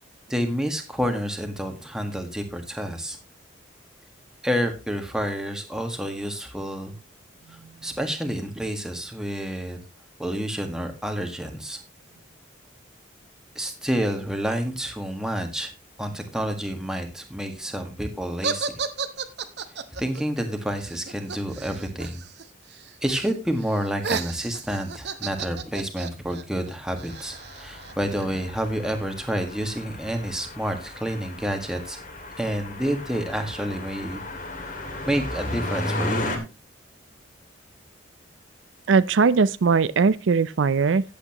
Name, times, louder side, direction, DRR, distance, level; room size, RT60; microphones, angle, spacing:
voice 1, 0.3-3.2 4.4-6.9 7.5-9.8 10.2-11.8 13.5-15.7 16.0-18.8 20.0-22.2 23.0-32.0 32.4-34.2 35.1-36.3, equal, 5° right, 1.6 m, -29 dB
sound 1, 18.4-22.4 22.7-23.3 23.6-28.2, right 5 dB, 55° right, 1.0 m, -33 dB
sound 2, 27.1-36.4, left 2 dB, 40° left, 2.2 m, -35 dB
voice 2, 38.9-41.0, right 5 dB, 75° right, 0.5 m, -20 dB
14.5 x 8.6 x 3.0 m
head